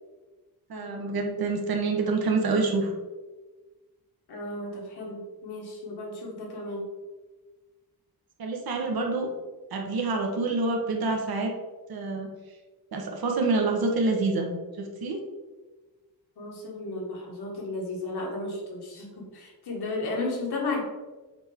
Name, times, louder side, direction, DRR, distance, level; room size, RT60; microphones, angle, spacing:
voice 1, 0.7-2.9 8.4-9.3 9.7-11.5 11.9-12.3 12.9-14.5 14.8-15.2, right 3 dB, 70° right, 2 dB, 1.2 m, -27 dB
voice 2, 4.3-6.8 16.4-19.1 19.3-20.8, left 2 dB, 80° left, -2 dB, 1.9 m, -34 dB
7.9 x 3.5 x 3.6 m, 1.2 s
wide cardioid pair, 145°, 38 cm